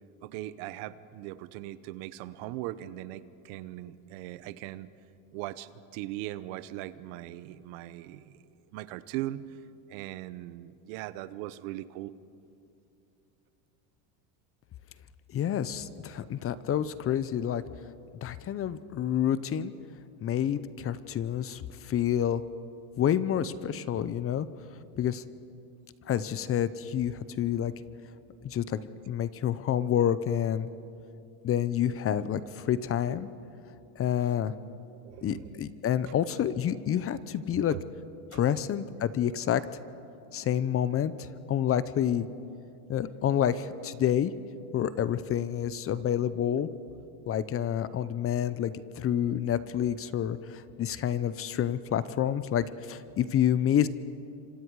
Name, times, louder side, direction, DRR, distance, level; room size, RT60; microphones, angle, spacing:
voice 1, 0.2-4.9 5.3-8.4 8.7-9.5 9.9-12.1 35.0-35.6 37.5-37.9, right 15 dB, 70° right, 15 dB, 1.0 m, -39 dB
voice 2, 15.3-17.6 18.2-19.7 20.2-22.4 23.0-24.5 25.0-25.2 26.1-27.7 28.4-28.8 29.1-30.7 31.4-33.3 34.0-34.5 35.2-37.8 38.3-39.6 40.3-42.3 42.9-44.3 44.7-46.7 47.3-53.9, left 10 dB, 35° left, 15 dB, 0.8 m, -28 dB
28.5 x 25.5 x 4.8 m, 2.6 s
supercardioid pair, 120°, 41 cm